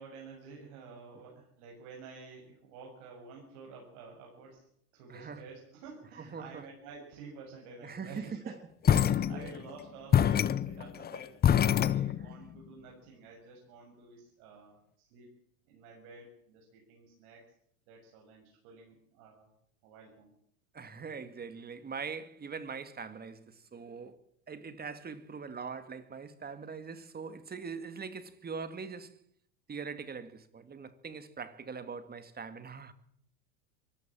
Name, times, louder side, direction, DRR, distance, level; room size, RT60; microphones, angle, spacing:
voice 1, 0.0-4.7 4.9-8.5 8.9-11.4 11.7-14.8 15.1-15.3 15.7-17.4 17.9-19.5 19.8-20.3, right 4 dB, 65° right, 7.1 m, -50 dB
voice 2, 5.1-5.4 6.2-6.6 7.8-8.5 9.3-9.5 12.2-12.3 20.7-24.2 24.5-29.2 29.7-32.9, right 5 dB, 20° right, 2.2 m, -42 dB
sound 1, 8.8-9.7 10.1-12.5, left 9 dB, 20° left, 0.7 m, -26 dB
23.5 x 15.0 x 7.5 m
supercardioid pair, 105°, 43 cm